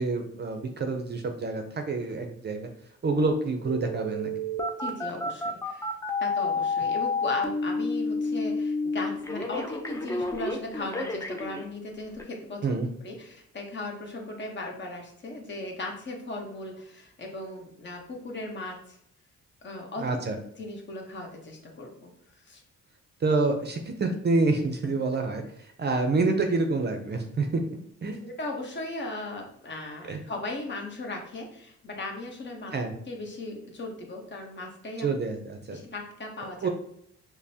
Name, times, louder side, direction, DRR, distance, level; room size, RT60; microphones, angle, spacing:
voice 1, 0.0-2.7 3.0-4.5 12.6-12.9 20.0-20.4 23.2-25.4 25.8-28.3 30.1-30.2 32.7-32.9 35.0-35.8 36.6-36.7, right 3 dB, 35° right, 5 dB, 0.6 m, -27 dB
Telephone, 3.7-11.6 12.2-12.3, left 3 dB, 10° left, 0.5 m, -30 dB
voice 2, 4.8-5.9 6.2-12.7 13.0-19.0 19.6-20.2 20.6-22.1 22.4-22.6 28.2-32.7 33.1-35.1 35.7-36.7, left 2 dB, 35° left, 1 dB, 1.1 m, -37 dB
5.1 x 2.1 x 2.8 m, 0.69 s
cardioid pair, 90°, 30 cm